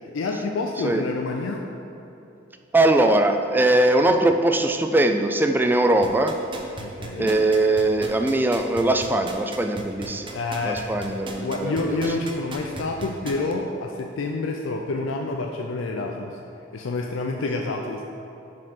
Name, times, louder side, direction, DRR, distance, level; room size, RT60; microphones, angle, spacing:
voice 1, 0.0-1.7 6.8-7.3 10.3-10.9 11.4-16.4 16.7-18.0, left 3 dB, 80° left, 2 dB, 0.4 m, -28 dB
voice 2, 2.7-6.4 7.2-10.3 10.6-12.0, right 1 dB, 10° right, 6 dB, 0.3 m, -21 dB
sound 1, 6.0-13.5 14.0-14.1, right 3 dB, 25° right, 0.7 m, -36 dB
6.3 x 4.4 x 5.7 m, 2.9 s
head